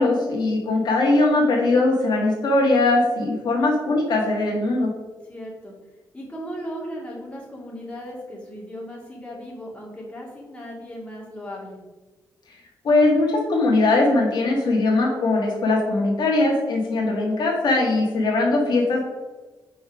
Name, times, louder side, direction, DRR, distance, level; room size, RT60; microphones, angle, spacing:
voice 1, 0.0-4.9 12.8-19.0, left 2 dB, 70° left, -1 dB, 1.5 m, -20 dB
voice 2, 5.3-5.7 6.1-11.8, equal, 15° left, -4 dB, 2.2 m, -36 dB
4.9 x 4.3 x 5.8 m, 1.2 s
cardioid pair, 110°, 8 cm